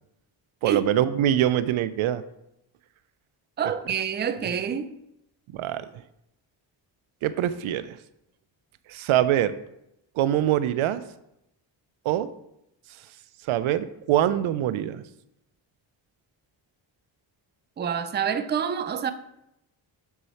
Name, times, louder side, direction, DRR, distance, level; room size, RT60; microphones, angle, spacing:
voice 1, 0.6-2.2 5.5-5.9 7.2-8.0 8.9-9.6 10.2-11.0 12.1-12.3 13.5-15.0, right 11 dB, 90° right, 0.5 m, -24 dB
voice 2, 3.6-4.9 17.8-19.1, right 7 dB, 25° right, 0.4 m, -27 dB
6.6 x 4.8 x 4.1 m
cardioid pair, 105°, 48 cm